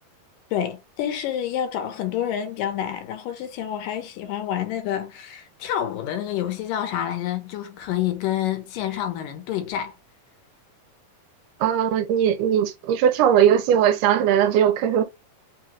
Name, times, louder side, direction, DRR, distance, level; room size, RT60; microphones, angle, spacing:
voice 1, 0.5-10.0, left 10 dB, 80° left, 2.5 m, -28 dB
voice 2, 11.6-15.0, right 9 dB, 90° right, 2.3 m, -19 dB
5.5 x 2.3 x 2.9 m
omnidirectional pair, 3.8 m